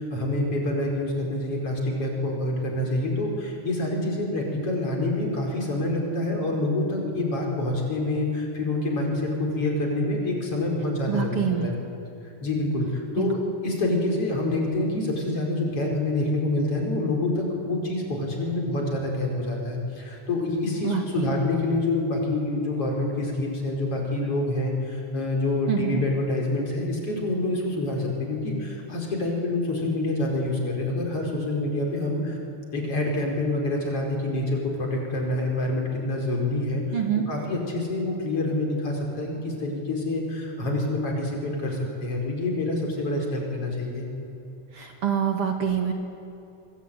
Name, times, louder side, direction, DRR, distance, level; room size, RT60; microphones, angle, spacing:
voice 1, 0.0-11.8 12.4-32.4 32.7-36.8 37.3-44.1, left 2 dB, 50° left, 0 dB, 5.9 m, -27 dB
voice 2, 11.1-11.7 13.2-13.3 20.8-21.4 25.7-26.0 36.9-37.2 44.7-45.9, right 8 dB, 50° right, 2 dB, 2.9 m, -26 dB
25.0 x 24.0 x 9.2 m, 2.9 s
omnidirectional pair, 3.4 m